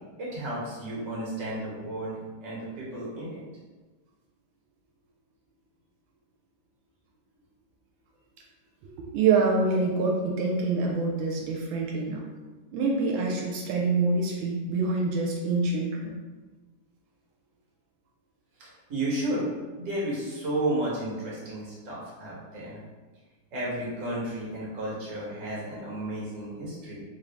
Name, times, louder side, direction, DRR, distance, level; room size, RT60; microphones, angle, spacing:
voice 1, 0.2-3.4 18.6-19.5 19.8-22.8 23.5-27.0, right 1 dB, 45° right, -6 dB, 1.4 m, -33 dB
voice 2, 9.0-12.3 12.7-16.2, right 3 dB, 85° right, -1 dB, 1.4 m, -26 dB
3.4 x 2.5 x 3.4 m, 1.3 s
omnidirectional pair, 2.1 m